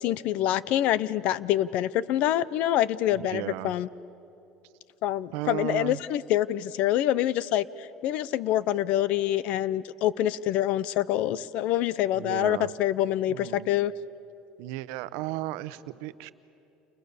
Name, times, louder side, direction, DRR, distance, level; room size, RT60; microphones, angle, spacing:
voice 1, 0.0-3.9 5.0-13.9, left 12 dB, 65° left, 19 dB, 0.7 m, -26 dB
voice 2, 3.1-3.7 5.3-6.0 12.1-12.7 13.3-13.7 14.6-16.3, right 16 dB, 85° right, 14 dB, 0.9 m, -35 dB
30.0 x 29.0 x 6.9 m, 2.9 s
cardioid pair, 120°, 2 cm